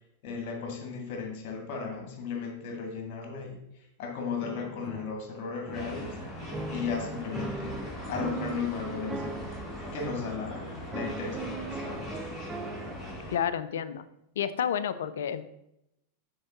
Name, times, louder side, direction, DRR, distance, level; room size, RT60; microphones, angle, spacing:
voice 1, 0.2-9.5 9.9-12.1, left 5 dB, 45° left, 2 dB, 2.0 m, -36 dB
sound 1, 4.4-6.2 6.5-8.8 9.1-10.3 10.9-12.9, right 3 dB, 10° right, 0.7 m, -39 dB
sound 2, 5.7-13.4, left 1 dB, 5° left, 2.3 m, -40 dB
voice 2, 13.3-14.0 14.4-15.5, left 8 dB, 60° left, 14 dB, 0.5 m, -30 dB
10.0 x 4.5 x 4.0 m, 0.83 s
figure-of-eight pair, 90°, 0 cm